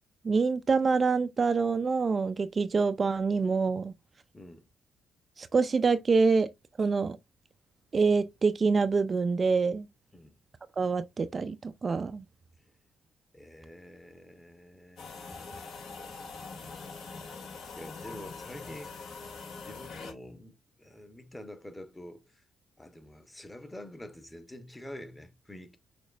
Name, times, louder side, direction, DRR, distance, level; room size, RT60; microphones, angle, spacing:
voice 1, 0.2-3.9 5.4-6.5 6.8-7.2 7.9-9.9 10.8-12.2, right 4 dB, 35° right, 0.4 m, -26 dB
voice 2, 4.3-4.7 10.1-10.4 13.3-15.1 15.4-15.7 17.7-19.1 19.5-22.2 22.8-25.8, left 1 dB, 15° left, 1.0 m, -47 dB
sound 1, 15.0-20.1, left 4 dB, 70° left, 2.3 m, -43 dB
6.2 x 3.0 x 2.4 m
cardioid pair, 90°, 0 cm